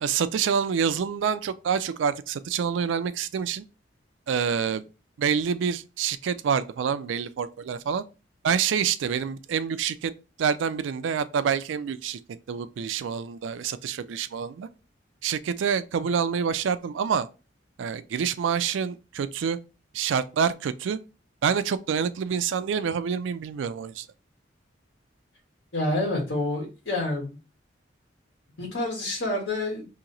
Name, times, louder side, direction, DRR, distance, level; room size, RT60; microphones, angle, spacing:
voice 1, 0.0-3.6 4.3-4.8 5.2-8.0 8.4-10.1 10.4-12.2 12.5-14.7 15.2-17.3 17.8-19.6 19.9-21.0 21.4-24.1, right 7 dB, 80° right, 0.3 m, -27 dB
voice 2, 25.7-27.3 28.6-29.9, left 2 dB, 70° left, 1.4 m, -28 dB
2.9 x 2.8 x 3.8 m
head